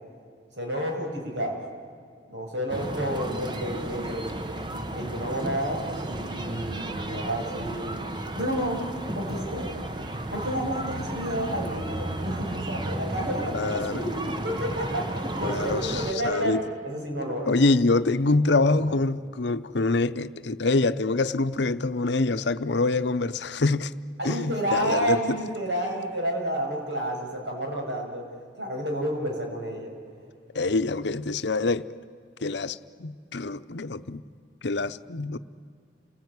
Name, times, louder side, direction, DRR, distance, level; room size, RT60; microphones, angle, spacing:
voice 1, 0.5-1.6 2.3-4.3 4.9-8.0 8.4-9.7 10.3-16.6 16.8-17.6 18.3-18.4 18.6-19.0 24.2-28.3 28.6-29.9, right 1 dB, 75° right, 6.5 m, -30 dB
sound 1, 2.7-16.1, right 1 dB, 25° right, 1.0 m, -33 dB
voice 2, 13.5-14.0 15.4-16.6 16.9-17.0 17.5-23.9 24.2-25.5 30.5-31.8 32.4-34.2 34.6-35.4, left 3 dB, 70° left, 0.8 m, -25 dB
28.5 x 20.0 x 9.6 m
head